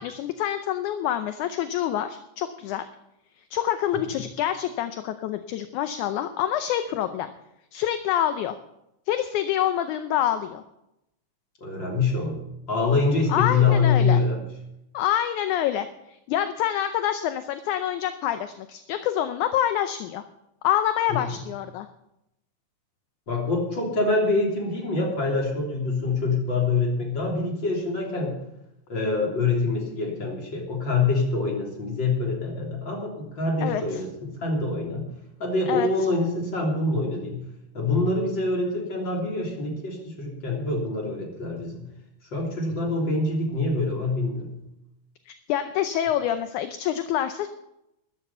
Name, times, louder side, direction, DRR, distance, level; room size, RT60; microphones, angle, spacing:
voice 1, 0.0-2.9 3.5-7.3 7.7-8.6 9.1-10.6 13.3-14.2 14.9-20.2 20.6-21.9 33.6-34.0 35.7-35.9 45.3-47.5, left 11 dB, 75° left, 9 dB, 2.0 m, -26 dB
voice 2, 11.6-12.3 12.7-14.4 21.1-21.2 23.3-28.3 28.9-35.1 35.4-37.4 37.7-41.9 42.3-44.6, left 3 dB, 35° left, -1 dB, 3.8 m, -25 dB
13.5 x 12.0 x 5.6 m, 0.84 s
omnidirectional pair, 3.8 m